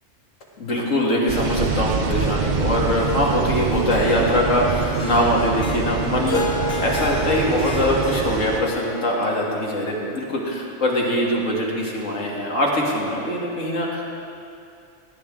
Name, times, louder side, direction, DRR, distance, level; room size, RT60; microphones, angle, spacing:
voice 1, 0.6-14.0, left 1 dB, 80° left, -2 dB, 2.2 m, -22 dB
sound 1, 1.3-8.6, right 5 dB, 50° right, 0.6 m, -25 dB
Harp, 3.7-10.1, left 2 dB, 50° left, 0.9 m, -32 dB
16.5 x 10.5 x 3.7 m, 2.6 s
omnidirectional pair, 1.3 m